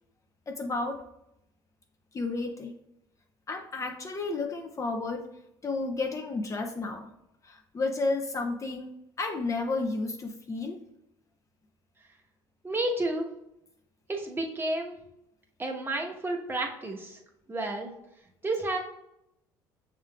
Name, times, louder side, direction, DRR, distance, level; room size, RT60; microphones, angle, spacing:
voice 1, 0.5-1.0 2.1-2.7 3.5-5.3 5.6-7.1 7.4-8.9 9.2-10.8, left 3 dB, 30° left, 3 dB, 0.6 m, -32 dB
voice 2, 12.6-13.3 14.1-14.9 15.6-17.2 17.5-17.9 18.4-18.8, right 2 dB, 20° right, 1 dB, 1.1 m, -31 dB
6.2 x 3.7 x 2.3 m, 0.82 s
hypercardioid pair, 70°, 11 cm